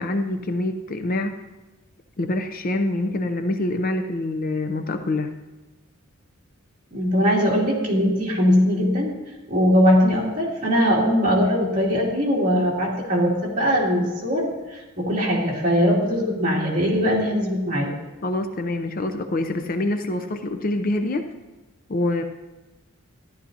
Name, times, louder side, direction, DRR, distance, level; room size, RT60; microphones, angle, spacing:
voice 1, 0.0-1.4 2.2-5.3 18.2-21.3 21.9-22.2, left 2 dB, 40° left, 8 dB, 0.5 m, -25 dB
voice 2, 6.9-9.1 9.5-17.9, equal, 40° right, -4 dB, 2.7 m, -21 dB
14.0 x 11.5 x 2.8 m, 1.1 s
head